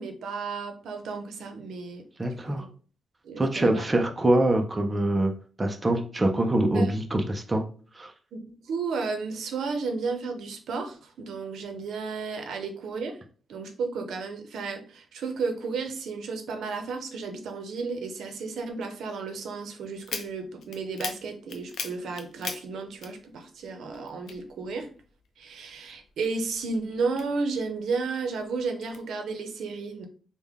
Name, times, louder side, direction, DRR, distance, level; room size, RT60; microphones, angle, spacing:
voice 1, 0.0-2.0 2.3-2.7 3.2-3.9 6.7-6.9 8.3-13.2 13.5-24.9 25.4-30.1, right 4 dB, 85° right, 5 dB, 0.6 m, -33 dB
voice 2, 2.2-2.7 3.4-5.3 5.6-7.6 7.9-8.1, right 1 dB, 15° right, 4 dB, 0.4 m, -24 dB
sound 1, 20.0-23.7 23.9-25.3 25.7-27.8 28.3-29.0, left 5 dB, 65° left, 0.5 m, -39 dB
3.5 x 2.1 x 3.4 m, 0.41 s
wide cardioid pair, 160°, 0 cm